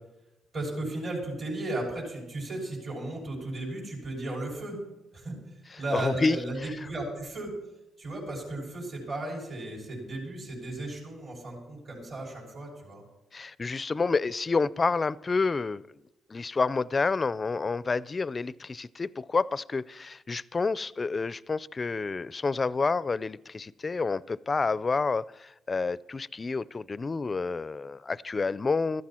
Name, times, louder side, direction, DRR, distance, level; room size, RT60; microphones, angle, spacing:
voice 1, 0.5-4.8 5.1-5.4 5.8-7.5 8.0-13.0, right 2 dB, 55° right, 6.0 m, -35 dB
voice 2, 5.9-6.4 13.3-15.9 16.3-29.0, left 4 dB, 30° left, 0.4 m, -29 dB
15.0 x 13.5 x 4.4 m
cardioid pair, 90°, 0 cm